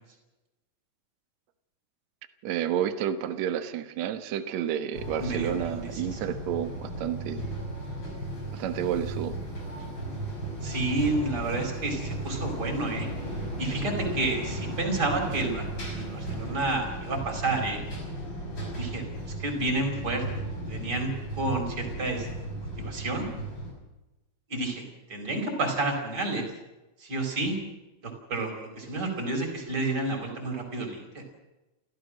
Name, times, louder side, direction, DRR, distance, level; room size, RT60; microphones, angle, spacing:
voice 1, 2.4-7.4 8.5-9.3, right 10 dB, 65° right, 9 dB, 2.3 m, -30 dB
sound 1, 4.9-23.7, right 1 dB, 35° left, 6.1 m, -35 dB
voice 2, 5.2-6.2 10.6-13.1 13.6-17.8 18.8-19.1 19.4-20.2 20.7-22.3 22.8-23.3 24.5-24.8 25.1-26.5 27.0-27.6 28.0-31.2, right 2 dB, 30° right, 2 dB, 5.3 m, -30 dB
29.0 x 14.5 x 6.5 m, 1.0 s
omnidirectional pair, 3.9 m